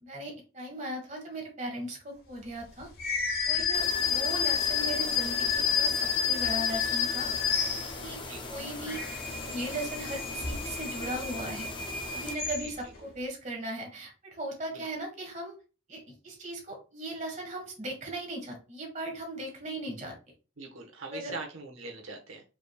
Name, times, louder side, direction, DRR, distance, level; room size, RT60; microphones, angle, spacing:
voice 1, 0.0-2.9 3.5-7.3 8.0-8.2 8.5-11.7 12.1-15.6 15.9-20.1 21.1-21.3, right 1 dB, 35° right, 2 dB, 1.5 m, -38 dB
sound 1, 3.0-8.2 8.7-13.0, left 7 dB, 45° left, 1.1 m, -30 dB
sound 2, 3.7-12.3, left 3 dB, 25° left, 0.5 m, -41 dB
voice 2, 12.6-13.1 14.7-14.9 20.6-22.4, right 3 dB, 80° right, 1 dB, 1.2 m, -42 dB
4.9 x 3.5 x 2.3 m, 0.33 s
head